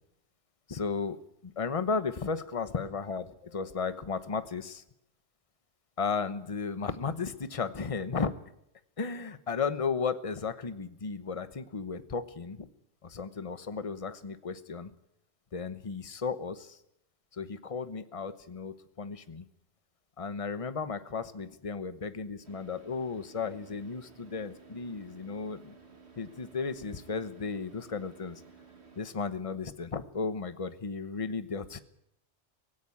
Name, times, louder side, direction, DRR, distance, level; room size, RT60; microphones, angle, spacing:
voice 1, 0.7-4.8 6.0-8.3 9.0-12.7 13.0-14.9 15.5-16.8 17.3-19.5 20.2-25.8 26.2-28.4 29.0-31.8, left 5 dB, 30° left, 12 dB, 1.0 m, -34 dB
Car / Idling, 22.4-29.0, right 5 dB, 70° right, 2.4 m, -55 dB
17.5 x 16.5 x 9.8 m, 0.77 s
omnidirectional pair, 1.1 m